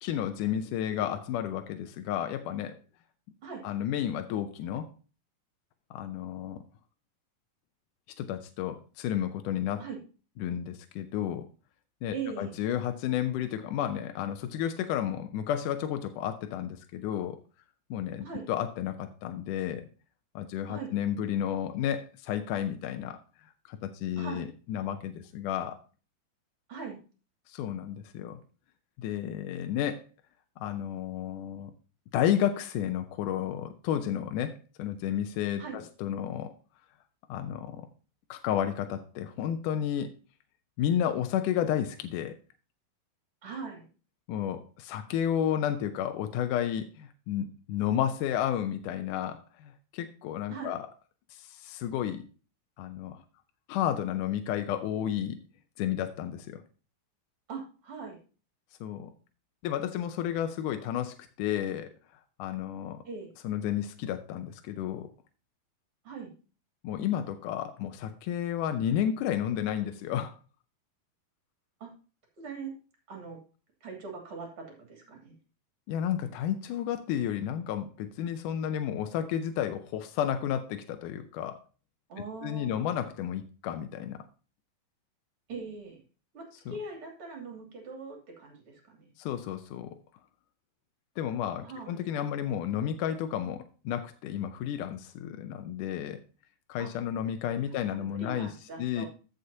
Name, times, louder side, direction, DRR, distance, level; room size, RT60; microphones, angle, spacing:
voice 1, 0.0-2.8 3.6-4.9 5.9-6.6 8.2-9.8 10.4-11.5 12.0-17.4 17.9-19.9 20.4-23.2 23.7-25.8 27.5-28.4 29.0-30.1 30.6-31.7 32.1-36.5 37.3-37.9 38.3-40.1 40.8-42.4 44.3-50.9 51.3-52.3 52.8-53.2 53.7-55.4 55.8-56.6 58.8-59.1 59.6-61.9 62.4-63.0 63.4-65.1 66.8-70.4 75.9-81.6 82.4-84.2 89.2-90.0 91.2-96.2 96.7-98.5 98.8-99.1, left 10 dB, 75° left, 8 dB, 1.9 m, -32 dB
voice 2, 12.1-12.5 18.2-18.4 20.7-20.9 24.2-24.5 26.7-27.0 35.6-35.8 43.4-43.9 50.5-50.8 57.5-58.2 63.0-63.3 66.0-66.3 71.8-71.9 72.4-72.7 73.1-73.4 73.8-75.4 82.1-82.8 85.5-86.0 86.3-89.1 91.6-92.0 96.8-96.9 97.9-99.1, right 5 dB, 40° right, 1 dB, 3.3 m, -41 dB
14.5 x 6.5 x 2.8 m, 0.35 s
omnidirectional pair, 4.2 m